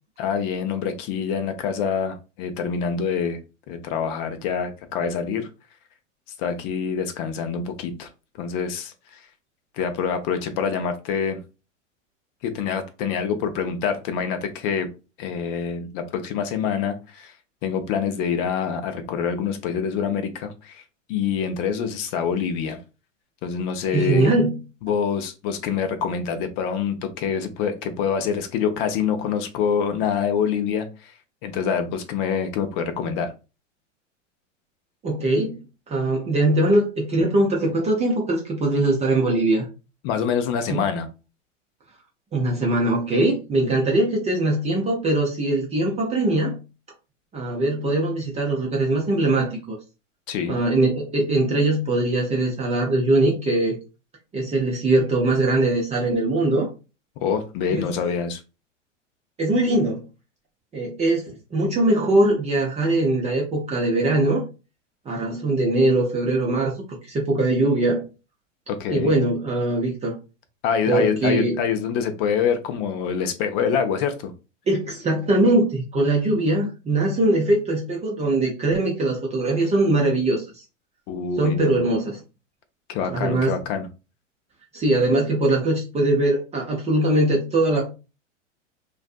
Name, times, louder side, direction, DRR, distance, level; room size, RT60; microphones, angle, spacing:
voice 1, 0.2-3.4 3.7-5.5 6.4-8.1 8.4-8.9 9.7-11.4 12.4-14.9 15.2-17.3 17.6-20.8 21.1-22.8 23.4-24.3 24.8-31.1 31.4-33.3 40.0-41.1 50.3-50.6 57.2-58.4 68.7-69.1 70.6-74.3 81.1-81.8 82.9-83.9, left 7 dB, 45° left, 7 dB, 0.6 m, -26 dB
voice 2, 23.9-24.6 35.0-35.6 35.9-39.7 40.7-40.8 42.3-46.6 47.3-49.8 50.5-53.8 54.3-56.7 57.7-57.9 59.4-60.0 60.7-64.4 65.1-68.0 68.9-70.2 70.9-71.6 74.7-80.6 81.4-82.2 83.1-83.6 84.7-87.9, right 2 dB, 15° right, -1 dB, 0.6 m, -21 dB
2.5 x 2.3 x 2.4 m, 0.30 s
hypercardioid pair, 105°, 38 cm